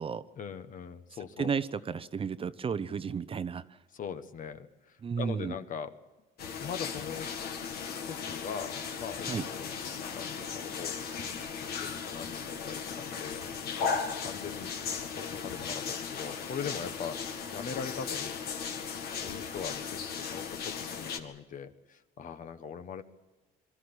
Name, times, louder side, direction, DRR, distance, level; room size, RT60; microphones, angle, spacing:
voice 1, 0.4-1.5 3.9-5.9 6.6-7.3 8.1-10.9 11.8-13.5 13.8-14.7 15.2-17.2 17.5-18.4 19.2-23.0, left 7 dB, 50° left, 10 dB, 1.5 m, -41 dB
voice 2, 1.4-3.6 5.0-5.5 9.2-9.4, right 6 dB, 35° right, 13 dB, 0.8 m, -33 dB
sound 1, 6.4-21.2, left 6 dB, 70° left, 2.2 m, -37 dB
23.5 x 14.0 x 9.9 m, 1.2 s
cardioid pair, 110°, 17 cm